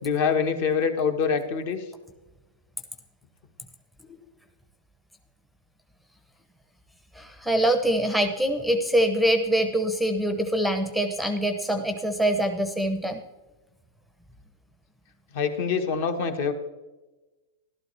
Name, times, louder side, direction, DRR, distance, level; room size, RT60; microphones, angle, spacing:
voice 1, 0.0-1.8 15.3-16.5, left 6 dB, 50° left, 7 dB, 1.3 m, -25 dB
voice 2, 7.1-13.2, right 1 dB, ahead, 7 dB, 0.7 m, -24 dB
13.5 x 12.0 x 3.2 m, 1.1 s
supercardioid pair, 155°, 0 cm